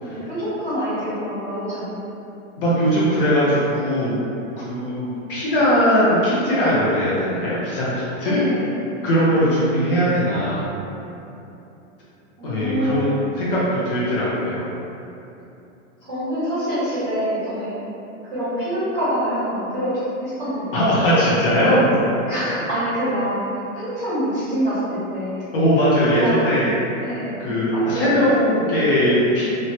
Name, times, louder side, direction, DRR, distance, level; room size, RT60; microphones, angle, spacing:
voice 1, 0.0-2.2 8.2-8.9 9.4-9.8 12.4-13.0 16.0-17.8 18.2-20.9 22.3-25.5 26.1-26.6 27.0-27.4 27.7-28.3, equal, 15° right, -21 dB, 0.3 m, -26 dB
voice 2, 2.6-4.2 4.7-8.4 9.0-10.7 12.4-14.6 20.7-21.9 25.5-26.7 27.4-29.5, equal, 45° left, -8 dB, 0.6 m, -19 dB
3.0 x 2.1 x 2.7 m, 2.8 s
supercardioid pair, 175°, 39 cm